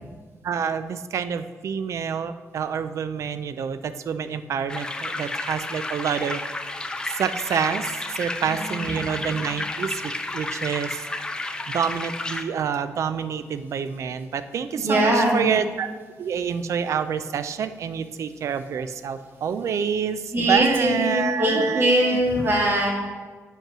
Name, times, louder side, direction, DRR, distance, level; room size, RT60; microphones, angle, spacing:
voice 1, 0.4-6.4 7.2-7.9 8.1-11.0 11.7-15.9 16.2-22.2, right 7 dB, 55° right, 11 dB, 0.4 m, -27 dB
sound 1, 4.7-12.4, left 2 dB, 15° left, 0.5 m, -32 dB
voice 2, 8.4-8.9 14.8-15.4 20.3-22.9, right 1 dB, 35° right, -2 dB, 1.9 m, -21 dB
8.9 x 5.4 x 6.1 m, 1.5 s
wide cardioid pair, 160°, 6 cm